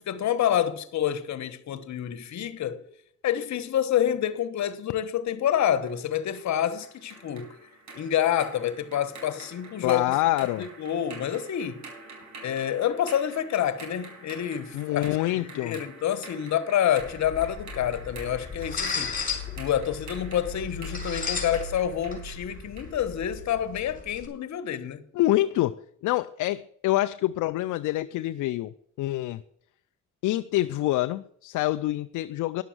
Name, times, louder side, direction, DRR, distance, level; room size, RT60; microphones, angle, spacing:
voice 1, 0.0-2.8 3.2-7.6 7.9-10.2 10.6-11.8 12.4-15.1 15.3-19.1 19.6-25.0, left 10 dB, 65° left, 1.3 m, -28 dB
sound 1, 5.9-23.7, right 3 dB, 65° right, 5.0 m, -47 dB
voice 2, 9.8-10.7 14.7-15.8 25.1-29.4 30.2-32.6, left 16 dB, 80° left, 0.5 m, -26 dB
sound 2, 17.0-24.3, left 5 dB, 30° left, 4.3 m, -35 dB
11.0 x 7.0 x 7.7 m
cardioid pair, 90°, 30 cm